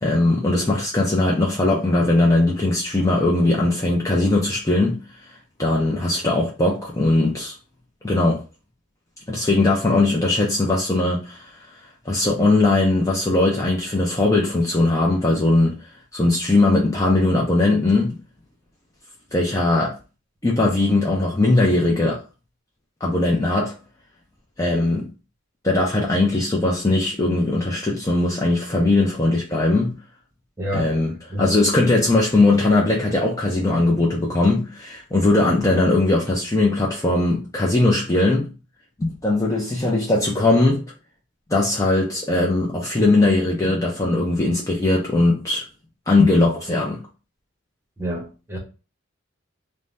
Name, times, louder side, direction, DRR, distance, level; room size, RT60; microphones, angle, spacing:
voice 1, 0.0-5.3 5.6-7.5 8.0-8.4 9.3-11.7 12.1-18.2 19.3-19.9 20.4-22.2 23.0-23.8 24.6-25.1 25.6-30.0 30.7-38.5 39.0-40.8 41.5-45.6 46.1-47.0, left 2 dB, 15° left, 0.4 m, -20 dB
voice 2, 30.6-30.9 31.3-31.5 48.0-48.6, equal, 10° right, 0.8 m, -28 dB
2.6 x 2.1 x 3.2 m
head